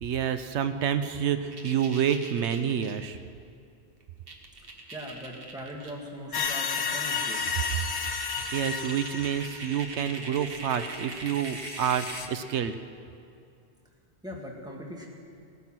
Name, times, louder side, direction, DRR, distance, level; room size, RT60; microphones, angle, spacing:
voice 1, 0.0-3.2 8.3-12.8, right 8 dB, 90° right, 10 dB, 1.0 m, -28 dB
sound 1, 1.5-2.9 4.0-4.1 4.3-5.9 6.3-6.4 6.9-12.3, right 3 dB, 55° right, 1.5 m, -41 dB
voice 2, 4.9-7.5 14.2-15.1, equal, 5° right, -2 dB, 1.9 m, -40 dB
sound 2, 6.3-10.0 10.9-11.0 11.4-12.3, left 5 dB, 80° left, 1.2 m, -32 dB
17.5 x 9.3 x 6.1 m, 2.4 s
omnidirectional pair, 1.1 m